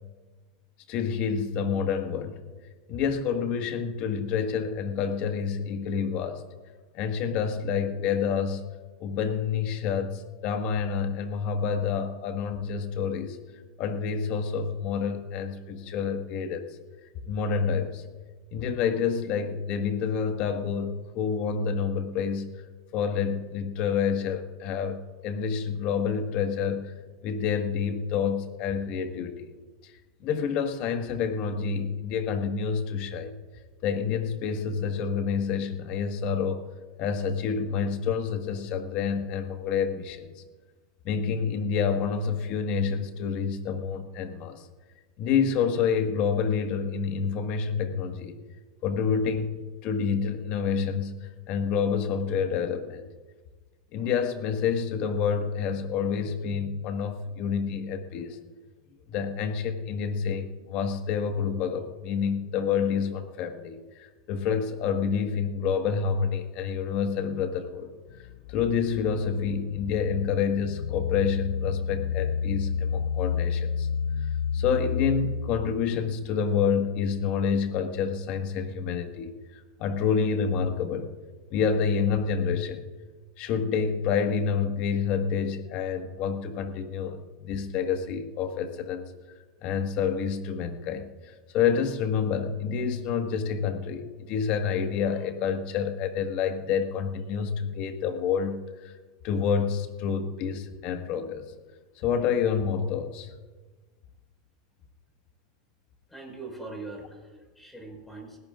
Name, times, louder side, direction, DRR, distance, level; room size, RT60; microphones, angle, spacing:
voice 1, 0.9-2.4 2.9-6.4 6.9-8.6 9.0-13.4 13.8-16.7 17.2-18.0 18.5-22.5 22.9-26.9 27.2-29.5 29.8-29.9 30.2-33.4 33.8-36.6 37.0-40.4 41.0-44.7 45.2-48.4 48.8-53.1 53.9-58.4 59.1-67.9 68.5-73.9 74.2-74.3 74.5-81.1 81.5-82.8 83.4-89.0 89.6-98.9 99.2-101.5 102.0-103.3, left 6 dB, 50° left, 6 dB, 1.6 m, -28 dB
sound 1, 68.1-75.9, left 6 dB, 70° left, 0.4 m, -30 dB
voice 2, 106.1-108.4, right 3 dB, 5° left, 1 dB, 5.0 m, -41 dB
20.0 x 17.5 x 2.5 m, 1.3 s
supercardioid pair, 125°, 3 cm